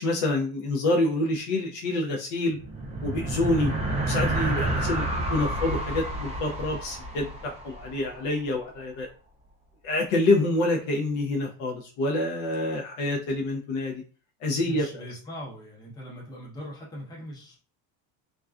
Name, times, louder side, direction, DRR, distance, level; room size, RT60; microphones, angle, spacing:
voice 1, 0.0-2.6 3.0-3.7 4.0-9.1 9.8-14.0 14.4-15.0, left 2 dB, 50° left, 1 dB, 0.5 m, -27 dB
sound 1, 2.5-8.2, right 1 dB, 20° right, 0.3 m, -29 dB
voice 2, 14.5-17.6, left 1 dB, 10° left, -3 dB, 0.7 m, -40 dB
2.3 x 2.2 x 2.3 m, 0.38 s
cardioid pair, 145°, 39 cm